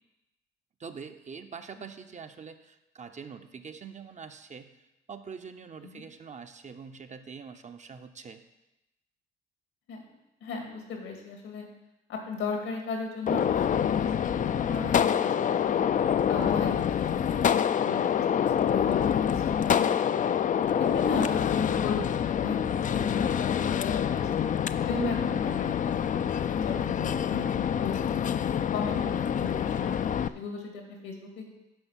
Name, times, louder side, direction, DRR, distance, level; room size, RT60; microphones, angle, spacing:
voice 1, 0.8-8.4, right 6 dB, 35° right, 7 dB, 0.7 m, -44 dB
voice 2, 10.4-11.6 12.1-15.8 16.3-20.0 20.6-24.4 24.9-26.0 26.4-28.3 28.7-31.5, left 4 dB, 85° left, 2 dB, 2.2 m, -36 dB
Gunshot gunfire, 13.3-30.3, left 8 dB, 40° left, 0.4 m, -26 dB
10.5 x 4.1 x 7.3 m, 0.94 s
cardioid pair, 90°, 20 cm